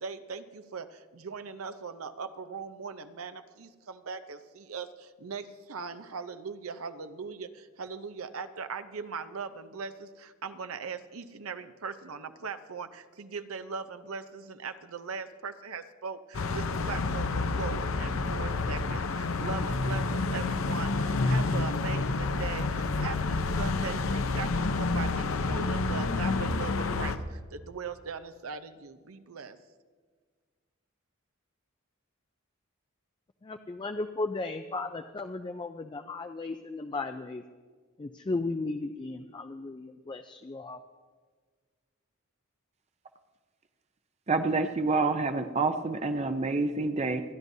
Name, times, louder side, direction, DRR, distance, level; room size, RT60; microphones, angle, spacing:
voice 1, 0.0-29.6, right 5 dB, 85° right, 10 dB, 0.7 m, -40 dB
sound 1, 16.3-27.2, left 3 dB, 75° left, 0.7 m, -29 dB
voice 2, 33.4-37.4 38.0-40.8, left 3 dB, 20° left, 7 dB, 0.3 m, -35 dB
voice 3, 44.3-47.2, right 3 dB, 30° right, 8 dB, 0.5 m, -27 dB
29.0 x 11.0 x 2.7 m, 1.6 s
head